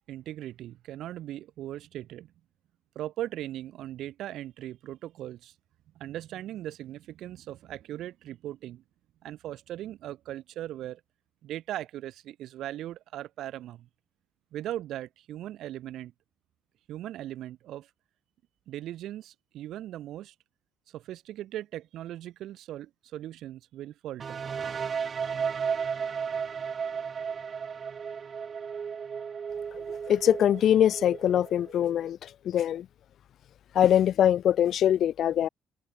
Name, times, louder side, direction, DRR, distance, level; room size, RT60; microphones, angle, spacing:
voice 1, 0.1-2.3 2.9-5.5 5.9-8.8 9.2-11.0 11.4-13.9 14.5-16.1 16.9-17.9 18.7-20.3 20.9-24.4, right 13 dB, 75° right, 1.5 m, -39 dB
sound 1, 24.2-31.9, right 6 dB, 40° right, 0.4 m, -34 dB
voice 2, 30.1-32.9 33.7-35.5, left 10 dB, 60° left, 0.3 m, -23 dB
cardioid pair, 110°, 0 cm